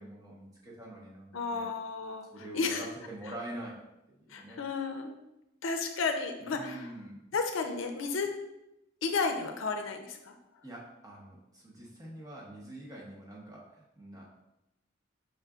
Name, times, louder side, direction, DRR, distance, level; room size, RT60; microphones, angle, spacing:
voice 1, 0.0-1.7 2.3-4.6 6.4-7.2 10.6-14.3, right 1 dB, 20° right, -4 dB, 0.8 m, -45 dB
voice 2, 1.3-2.9 4.3-5.1 5.6-6.9 7.3-8.3 9.0-10.3, left 4 dB, 80° left, 5 dB, 0.5 m, -33 dB
4.9 x 3.8 x 2.4 m, 0.89 s
head